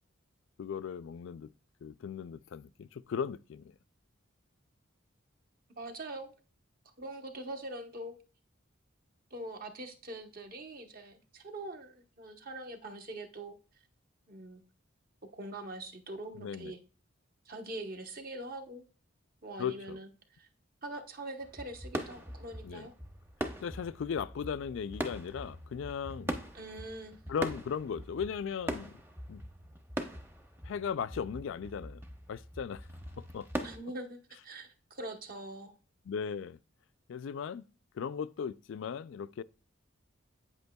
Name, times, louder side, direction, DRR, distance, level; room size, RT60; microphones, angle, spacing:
voice 1, 0.6-1.5 1.8-3.7 16.4-16.7 19.6-20.0 22.6-22.9 23.6-26.3 27.3-29.0 29.3-29.4 30.6-32.0 32.3-32.9 33.2-33.5 36.1-36.6 37.1-37.6 37.9-39.4, left 7 dB, 65° left, 0.3 m, -37 dB
voice 2, 5.8-6.3 7.0-8.2 9.3-13.6 14.3-14.6 15.2-16.8 17.5-18.9 19.4-20.5 20.8-22.9 26.5-27.2 33.6-35.7, right 1 dB, 45° right, 0.9 m, -43 dB
sound 1, 21.4-33.8, equal, 10° right, 0.7 m, -41 dB
8.6 x 7.9 x 2.3 m
head